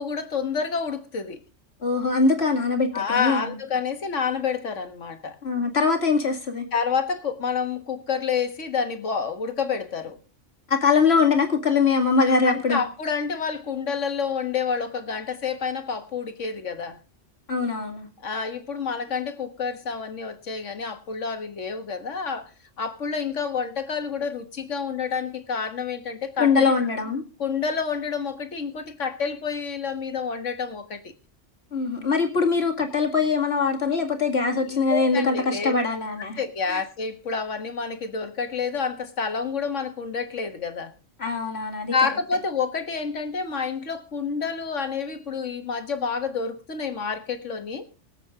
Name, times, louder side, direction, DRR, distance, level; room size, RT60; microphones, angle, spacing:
voice 1, 0.0-1.4 2.9-5.4 6.7-10.2 12.3-17.0 18.2-22.5 22.8-26.8 27.4-31.1 34.6-35.7 36.4-40.9 41.9-47.8, left 5 dB, 80° left, 1.8 m, -28 dB
voice 2, 1.8-3.6 5.4-6.6 10.7-12.8 17.5-18.1 26.4-27.2 31.7-36.4 36.7-36.8 41.2-41.9, left 4 dB, 60° left, 2.5 m, -22 dB
23.5 x 8.0 x 3.7 m
omnidirectional pair, 1.2 m